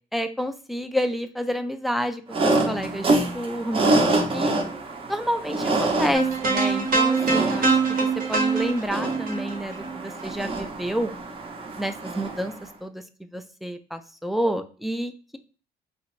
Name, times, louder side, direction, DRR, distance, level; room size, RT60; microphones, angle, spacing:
voice 1, 0.1-4.5 5.1-11.1 11.8-12.5 12.8-15.4, equal, ahead, 8 dB, 0.3 m, -29 dB
sound 1, 2.3-12.6, right 2 dB, 30° right, 0.7 m, -27 dB
sound 2, 6.1-10.5, right 4 dB, 60° right, 0.9 m, -24 dB
3.2 x 2.5 x 3.0 m, 0.38 s
cardioid pair, 110°, 17 cm